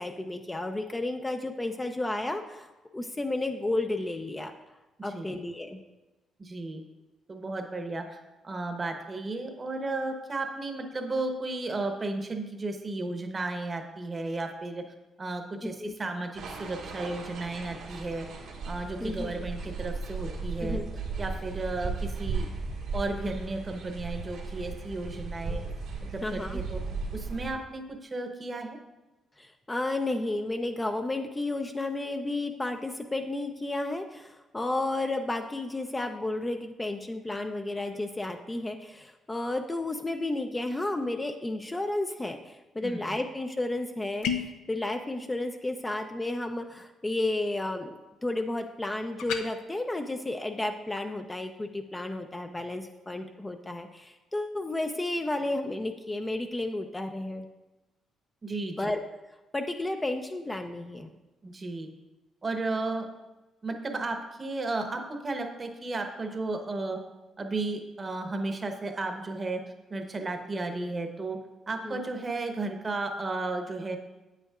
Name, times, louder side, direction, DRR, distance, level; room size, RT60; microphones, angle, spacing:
voice 1, 0.0-2.7 2.9-4.5 5.0-5.8 15.6-15.9 19.0-19.3 20.6-20.9 26.2-26.6 29.4-57.5 58.8-59.0 59.5-61.1 71.8-72.0, left 2 dB, 15° left, 5 dB, 0.5 m, -32 dB
voice 2, 5.0-5.4 6.4-6.8 7.3-8.2 8.4-14.8 15.2-18.3 18.6-20.8 21.2-22.5 22.9-25.6 26.1-26.8 27.1-28.8 42.8-43.0 58.4-58.9 61.4-61.9 62.4-63.1 63.6-67.0 67.4-69.6 69.9-71.4 71.7-74.0, right 2 dB, 30° right, 5 dB, 0.9 m, -34 dB
sound 1, 16.3-27.5, right 4 dB, 80° right, 1.4 m, -36 dB
sound 2, 44.2-44.6 49.2-49.5, left 7 dB, 90° left, 0.5 m, -30 dB
8.5 x 8.2 x 2.4 m, 1.1 s
cardioid pair, 90°, 0 cm